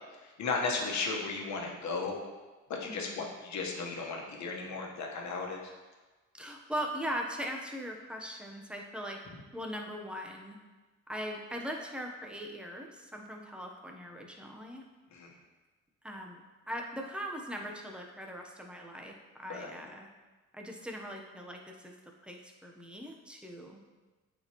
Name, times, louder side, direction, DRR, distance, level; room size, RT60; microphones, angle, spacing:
voice 1, 0.0-2.2 2.7-5.7 15.1-15.4 19.5-19.7, left 4 dB, 70° left, 0 dB, 1.3 m, -35 dB
voice 2, 2.8-3.2 6.3-9.2 9.5-10.6 11.1-14.8 16.0-16.4 16.7-20.1 20.5-22.0 22.2-23.8, equal, 5° right, 1 dB, 0.9 m, -40 dB
8.4 x 4.4 x 3.0 m, 1.3 s
cardioid pair, 90°, 30 cm